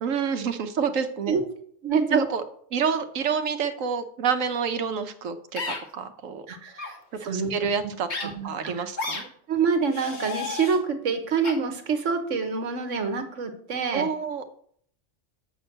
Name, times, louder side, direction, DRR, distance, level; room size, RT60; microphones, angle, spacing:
voice 1, 0.0-1.4 2.1-2.4 2.7-6.4 7.2-8.1 8.4-9.2 13.9-14.5, right 6 dB, 90° right, 9 dB, 1.2 m, -28 dB
voice 2, 1.8-2.2 6.5-7.5 8.2-8.7 9.5-14.1, right 5 dB, 70° right, 7 dB, 1.5 m, -26 dB
sound 1, 5.6-5.8 6.7-6.9 8.1-8.2 9.0-9.2 9.9-10.8 11.4-11.5, left 3 dB, 60° left, 1.9 m, -32 dB
7.5 x 6.2 x 6.5 m, 0.62 s
omnidirectional pair, 1.3 m